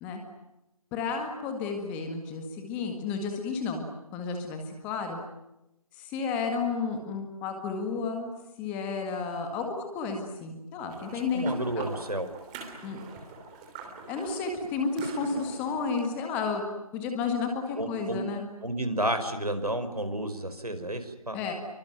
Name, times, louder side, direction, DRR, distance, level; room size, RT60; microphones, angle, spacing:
voice 1, 0.9-3.9 4.1-5.2 6.0-8.3 8.6-11.4 11.8-11.9 12.8-13.0 14.1-16.6 16.9-18.5 21.3-21.5, left 5 dB, 10° left, 4 dB, 1.8 m, -32 dB
sound 1, 10.9-16.0, right 3 dB, 10° right, 3.0 m, -43 dB
voice 2, 11.1-12.3 17.8-18.2 18.6-21.5, right 1 dB, 90° right, 8 dB, 5.1 m, -31 dB
27.0 x 24.0 x 9.3 m, 0.91 s
figure-of-eight pair, 160°, 19 cm